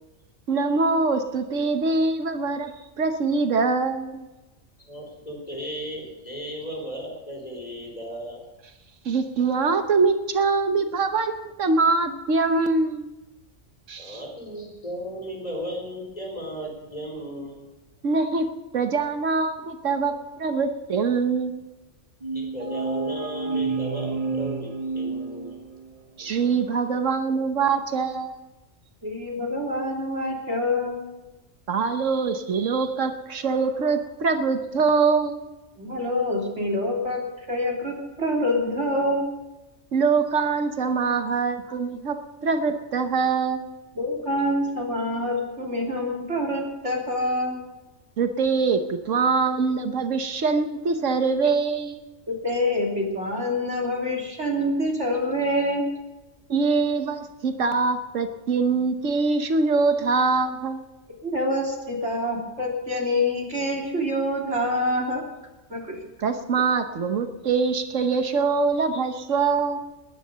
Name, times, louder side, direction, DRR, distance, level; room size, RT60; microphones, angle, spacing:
voice 1, 0.5-2.7 3.0-4.3 9.0-13.1 13.9-14.2 18.0-18.5 18.7-21.6 26.2-28.4 31.7-35.4 39.9-42.2 42.4-43.7 48.2-52.0 56.5-60.8 66.2-69.8, right 4 dB, 80° right, 7 dB, 1.5 m, -23 dB
voice 2, 4.9-8.4 14.0-17.6 22.3-24.7 24.9-25.6 26.2-26.5, equal, 30° left, 0 dB, 4.7 m, -35 dB
sound 1, 22.2-26.0, right 4 dB, 35° right, 0.7 m, -29 dB
voice 3, 29.0-31.0 35.8-37.2 37.5-39.2 44.0-47.6 52.3-55.9 61.2-65.2 65.7-66.0, left 1 dB, 65° right, -1 dB, 3.6 m, -26 dB
20.0 x 10.5 x 6.8 m, 1.1 s
omnidirectional pair, 1.3 m